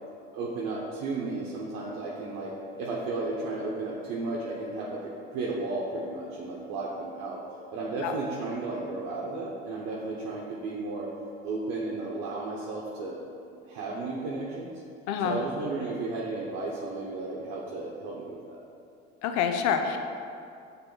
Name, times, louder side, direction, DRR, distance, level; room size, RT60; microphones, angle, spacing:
voice 1, 0.3-2.5 2.8-5.0 5.3-7.4 7.7-11.1 11.4-13.2 13.7-14.7 15.2-18.6, right 3 dB, 55° right, -4 dB, 1.0 m, -33 dB
voice 2, 15.1-15.4 19.2-20.0, left 7 dB, 60° left, 6 dB, 0.7 m, -27 dB
6.6 x 3.8 x 3.8 m, 2.4 s
hypercardioid pair, 75°, 31 cm